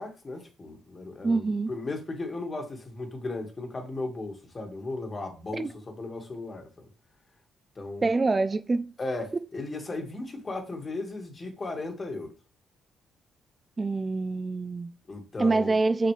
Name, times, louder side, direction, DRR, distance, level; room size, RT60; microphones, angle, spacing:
voice 1, 0.0-6.9 7.8-8.1 9.0-12.3 15.1-15.8, left 2 dB, 30° left, 2.0 m, -36 dB
voice 2, 1.2-1.7 5.6-5.7 8.0-8.9 13.8-14.9 15.4-16.1, right 3 dB, 25° right, 0.4 m, -25 dB
6.6 x 6.4 x 3.3 m
cardioid pair, 90°, 0 cm